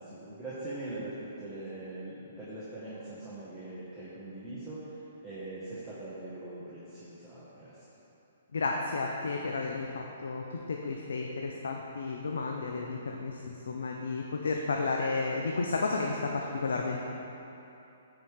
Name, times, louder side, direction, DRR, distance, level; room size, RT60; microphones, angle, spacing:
voice 1, 0.0-7.8, right 2 dB, 5° right, -13 dB, 1.5 m, -42 dB
voice 2, 8.5-17.0, left 3 dB, 80° left, 0 dB, 0.6 m, -32 dB
11.5 x 4.9 x 3.6 m, 2.9 s
hypercardioid pair, 145°, 0 cm